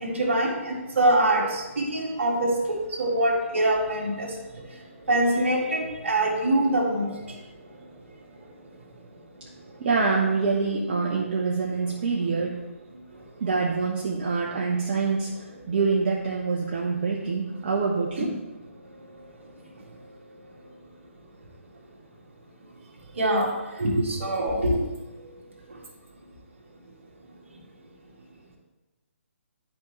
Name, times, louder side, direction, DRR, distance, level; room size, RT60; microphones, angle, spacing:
voice 1, 0.0-4.4 4.7-7.4 18.2-18.3 23.2-24.8 25.7-25.8, right 1 dB, 60° right, -1 dB, 1.9 m, -24 dB
voice 2, 9.8-12.6 13.4-18.3, right 4 dB, 40° right, -3 dB, 0.9 m, -26 dB
10.5 x 5.2 x 3.2 m, 1.1 s
figure-of-eight pair, 135°, 7 cm